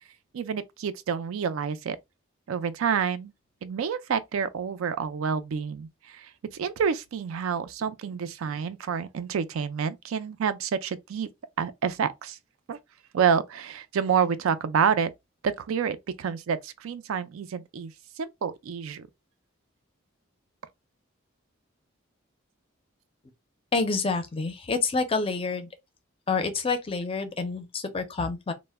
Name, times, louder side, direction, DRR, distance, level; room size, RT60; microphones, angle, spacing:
voice 1, 0.3-2.0 2.5-3.3 3.6-6.3 6.5-11.3 11.6-12.4 12.7-12.8 13.1-15.1 15.4-17.9 18.2-19.1, right 7 dB, 80° right, 0.4 m, -28 dB
voice 2, 23.7-25.7 26.3-28.5, left 4 dB, 25° left, 0.4 m, -28 dB
2.1 x 2.0 x 3.3 m
head